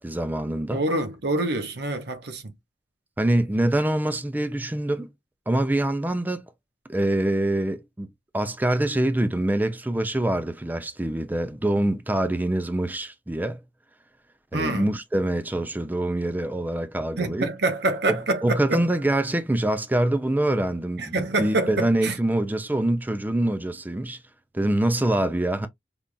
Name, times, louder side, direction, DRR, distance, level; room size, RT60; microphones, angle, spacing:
voice 1, 0.0-0.8 3.2-5.1 5.5-6.4 6.9-8.1 8.3-13.6 14.5-17.5 18.1-24.2 24.5-25.7, right 1 dB, 10° right, 0.4 m, -25 dB
voice 2, 0.7-2.5 14.5-14.9 17.2-18.8 21.0-22.2, right 2 dB, 60° right, 0.9 m, -26 dB
5.2 x 2.4 x 2.3 m
head